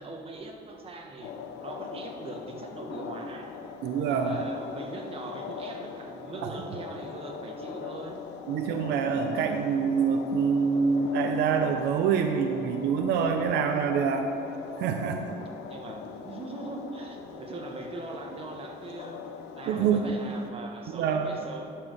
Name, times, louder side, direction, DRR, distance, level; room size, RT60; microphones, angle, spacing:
voice 1, 0.0-1.3 1.6-3.5 4.1-8.2 15.6-19.2 19.6-21.7, right 2 dB, 35° right, 1 dB, 1.4 m, -41 dB
sound 1, 1.2-20.5, left 6 dB, 90° left, 0.8 m, -41 dB
voice 2, 3.8-4.4 6.4-6.5 8.5-14.3 14.8-15.4 19.7-20.1 20.9-21.3, right 6 dB, 80° right, 5 dB, 0.6 m, -26 dB
11.5 x 4.8 x 6.5 m, 2.7 s
cardioid pair, 110°, 17 cm